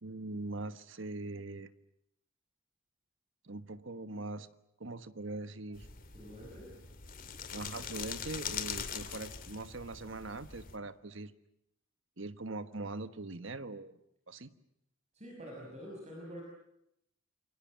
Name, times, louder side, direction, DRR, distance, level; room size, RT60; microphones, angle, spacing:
voice 1, 0.0-1.7 3.4-4.5 4.8-5.9 7.5-11.3 12.2-14.0 14.3-14.5, right 2 dB, 65° right, 12 dB, 1.4 m, -42 dB
sound 1, 5.7-10.8, left 7 dB, 40° left, 2.4 m, -42 dB
voice 2, 6.1-6.7 15.1-16.4, equal, 35° right, -1 dB, 5.8 m, -46 dB
28.5 x 24.0 x 7.5 m, 0.78 s
head